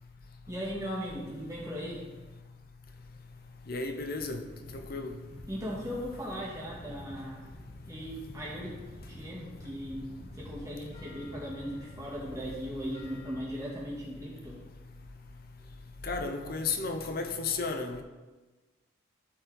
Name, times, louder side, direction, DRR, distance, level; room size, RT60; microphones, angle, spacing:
voice 1, 0.5-2.0 5.5-7.5 7.9-8.7 9.1-10.1 10.3-14.6, equal, 15° right, 2.0 m, -38 dB
voice 2, 3.7-4.4 4.7-5.1 16.0-18.0, left 4 dB, 45° left, 0.8 m, -33 dB
sound 1, 4.1-13.5, equal, 25° left, 1.1 m, -50 dB
12.5 x 4.5 x 4.0 m
head